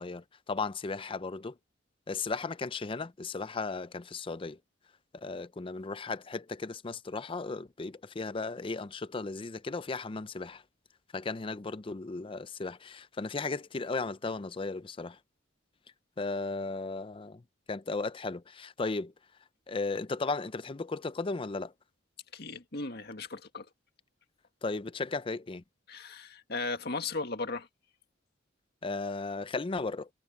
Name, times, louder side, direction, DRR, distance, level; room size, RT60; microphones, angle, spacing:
voice 1, 0.0-1.5 2.1-4.6 5.1-10.6 11.1-15.2 16.2-17.4 17.7-19.1 19.7-21.7 24.6-25.6 28.8-30.1, left 3 dB, 25° left, 0.5 m, -35 dB
voice 2, 22.3-23.7 25.9-27.7, left 3 dB, 55° left, 1.9 m, -36 dB
head